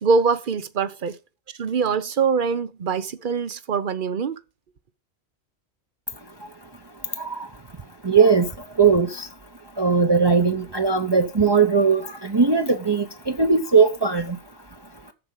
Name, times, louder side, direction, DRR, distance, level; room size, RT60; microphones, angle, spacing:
voice 1, 0.0-1.2 1.6-4.4, right 5 dB, 50° right, 1.0 m, -23 dB
voice 2, 8.0-8.5 8.8-9.3 9.8-14.4, right 5 dB, 25° right, 0.9 m, -19 dB
14.0 x 4.9 x 5.6 m
omnidirectional pair, 1.1 m